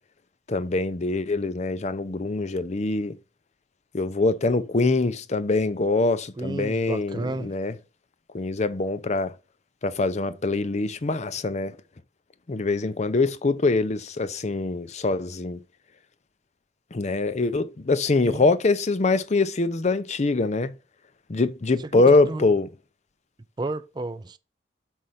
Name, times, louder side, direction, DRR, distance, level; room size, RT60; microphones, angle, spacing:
voice 1, 0.5-3.2 3.9-7.8 8.3-9.3 9.8-11.8 12.5-15.6 16.9-20.7 21.3-22.7, left 3 dB, 40° left, 0.6 m, -24 dB
voice 2, 6.4-7.5 18.3-18.4 21.8-21.9 22.3-22.4 23.6-24.4, right 2 dB, 25° right, 0.4 m, -32 dB
6.4 x 5.3 x 5.5 m
head